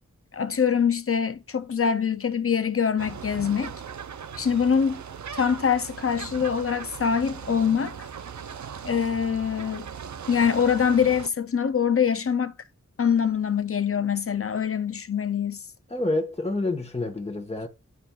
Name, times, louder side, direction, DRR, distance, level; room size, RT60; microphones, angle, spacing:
voice 1, 0.3-3.7 4.4-5.0 5.3-8.0 8.8-9.9 10.3-12.5 13.0-15.6, left 7 dB, 50° left, 0.5 m, -24 dB
sound 1, 3.0-11.3, right 7 dB, 70° right, 0.5 m, -39 dB
voice 2, 15.9-17.7, left 2 dB, 20° left, 1.1 m, -28 dB
11.0 x 4.3 x 2.3 m
wide cardioid pair, 65°, 30 cm